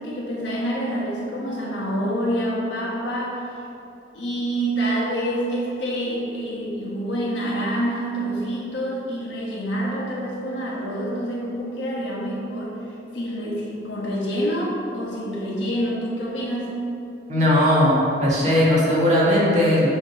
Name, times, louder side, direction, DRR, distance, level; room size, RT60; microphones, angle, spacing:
voice 1, 0.0-3.6 4.1-16.8, equal, 70° left, -4 dB, 1.2 m, -27 dB
voice 2, 17.3-19.9, left 1 dB, 40° right, -7 dB, 1.5 m, -18 dB
8.1 x 3.1 x 4.5 m, 2.8 s
head